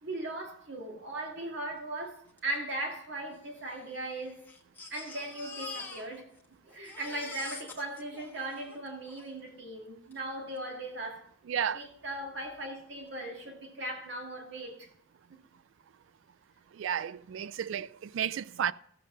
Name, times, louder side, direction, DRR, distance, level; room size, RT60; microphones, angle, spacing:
voice 1, 0.0-4.4 4.9-6.3 6.7-11.3 11.7-14.9, right 1 dB, 60° right, 2.2 m, -38 dB
Crying sobbing, 2.4-2.5 2.7-2.8 3.6-6.5 6.7-9.3 10.1-10.2 10.6-10.7, left 4 dB, 10° left, 1.2 m, -45 dB
voice 2, 11.5-11.9 16.7-18.7, right 8 dB, 75° right, 0.3 m, -32 dB
14.5 x 7.3 x 3.8 m
head